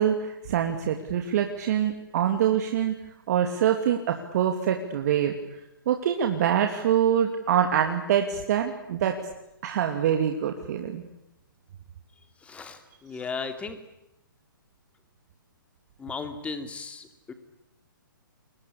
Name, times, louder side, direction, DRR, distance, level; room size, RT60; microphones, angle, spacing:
voice 1, 0.0-2.9 3.3-5.3 5.9-9.2 9.6-11.0, right 9 dB, 50° right, 5 dB, 2.7 m, -25 dB
voice 2, 12.4-13.8 16.0-17.3, left 4 dB, 10° left, 9 dB, 2.9 m, -36 dB
29.0 x 23.0 x 8.5 m, 0.88 s
hypercardioid pair, 135°, 11 cm